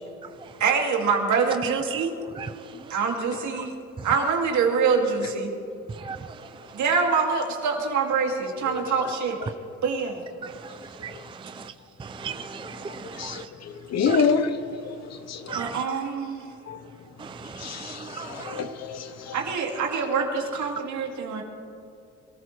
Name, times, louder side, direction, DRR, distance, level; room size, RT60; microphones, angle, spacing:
voice 1, 0.6-2.1 2.9-3.7 4.0-5.5 6.7-9.4 9.8-10.2 15.5-16.5 19.3-21.4, right 5 dB, 70° right, 2.4 m, -25 dB
voice 2, 12.0-13.4 14.1-14.2 15.5-15.8 17.2-18.6, right 6 dB, 15° right, 0.4 m, -36 dB
voice 3, 13.2-14.6 14.8-14.9 15.3-15.5 16.7-16.8 17.6-19.4, left 5 dB, 60° left, 1.0 m, -27 dB
22.0 x 14.0 x 3.3 m
cardioid pair, 90°, 30 cm